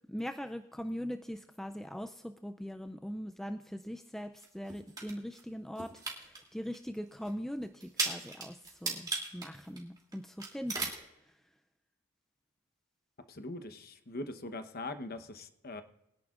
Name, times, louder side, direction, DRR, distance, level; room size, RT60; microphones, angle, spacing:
voice 1, 0.1-5.9 6.2-10.9, equal, ahead, 7 dB, 0.3 m, -41 dB
sound 1, 4.4-5.4 5.8-6.4 6.7-6.8 7.2-7.3 7.8-10.1 10.4-11.0, right 3 dB, 20° right, 2.8 m, -36 dB
voice 2, 13.3-15.8, left 2 dB, 45° left, 8 dB, 1.0 m, -42 dB
22.5 x 11.0 x 2.5 m, 0.88 s
head